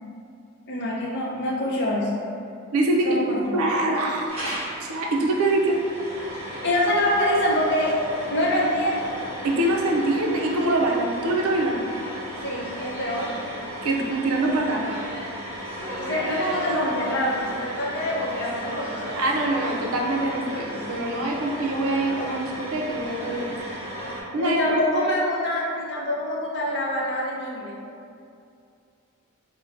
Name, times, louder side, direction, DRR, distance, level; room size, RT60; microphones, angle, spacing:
voice 1, 0.7-2.1 3.0-3.6 6.3-8.0 8.3-9.1 12.4-13.3 16.0-19.0 24.4-27.7, left 1 dB, 50° left, -5 dB, 0.6 m, -25 dB
voice 2, 2.7-3.2 3.5-5.8 9.4-11.9 13.8-14.8 19.2-23.6 24.3-24.8, right 2 dB, 80° right, -1 dB, 0.5 m, -24 dB
sound 1, 4.3-24.2, equal, 25° right, 0.8 m, -35 dB
4.4 x 2.1 x 2.5 m, 2.4 s
head